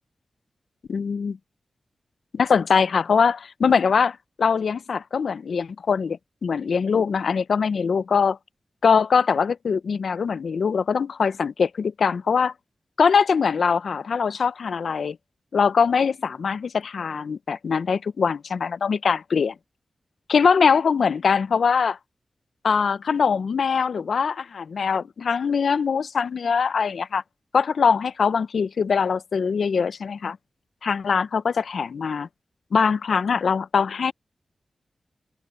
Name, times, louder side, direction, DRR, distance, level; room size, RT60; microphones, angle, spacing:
voice 1, 0.9-1.4 2.3-8.4 8.8-12.5 13.0-15.2 15.5-19.5 20.3-22.0 22.6-27.2 27.5-30.4 30.8-32.3 32.7-34.1, left 6 dB, 75° left, 0.5 m, -22 dB
wide cardioid pair, 140°, 0 cm